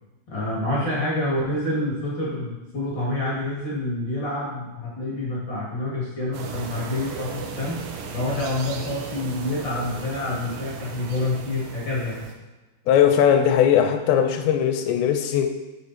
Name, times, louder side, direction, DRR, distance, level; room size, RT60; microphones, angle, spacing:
voice 1, 0.3-7.7 8.1-12.2, left 1 dB, 35° left, -6 dB, 2.1 m, -27 dB
sound 1, 6.3-12.3, right 5 dB, 90° right, 1.9 m, -36 dB
voice 2, 12.9-15.5, left 9 dB, 85° left, 6 dB, 2.9 m, -19 dB
8.5 x 6.2 x 4.2 m, 1.1 s
omnidirectional pair, 5.0 m